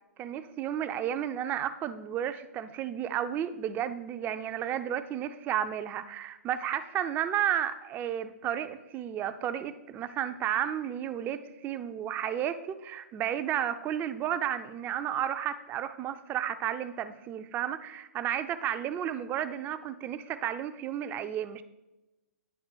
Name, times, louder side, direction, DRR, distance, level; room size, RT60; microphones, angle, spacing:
voice 1, 0.2-21.6, right 10 dB, 25° right, 11 dB, 0.5 m, -32 dB
9.8 x 3.6 x 6.2 m, 1.0 s
figure-of-eight pair, 115°, 8 cm